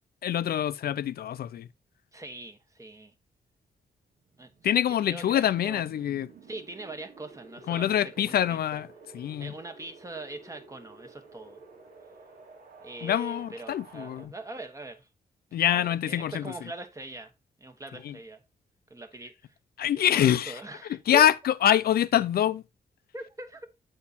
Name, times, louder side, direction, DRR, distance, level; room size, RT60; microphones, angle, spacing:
voice 1, 0.2-1.7 4.6-6.3 7.7-8.9 9.1-9.5 13.0-14.3 15.5-16.5 18.0-18.1 19.8-20.6 21.1-22.6, left 10 dB, 75° left, 0.4 m, -25 dB
voice 2, 2.1-3.1 4.4-5.8 6.5-8.8 9.4-11.6 12.8-15.1 15.6-17.3 17.6-18.4 18.9-19.5 19.9-21.3 23.1-23.7, right 2 dB, 20° right, 1.1 m, -42 dB
Wind, 4.0-14.3, right 4 dB, 80° right, 2.4 m, -52 dB
8.3 x 4.3 x 4.0 m
wide cardioid pair, 135°, 16 cm